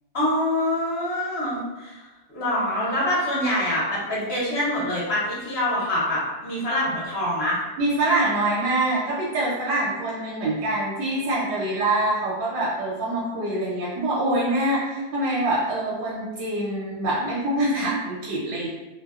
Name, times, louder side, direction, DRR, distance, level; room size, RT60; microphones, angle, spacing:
voice 1, 0.1-7.6, left 1 dB, 50° left, -7 dB, 0.8 m, -25 dB
voice 2, 7.8-18.7, right 1 dB, 85° right, -7 dB, 1.2 m, -25 dB
2.7 x 2.1 x 2.3 m, 1.2 s
omnidirectional pair, 1.8 m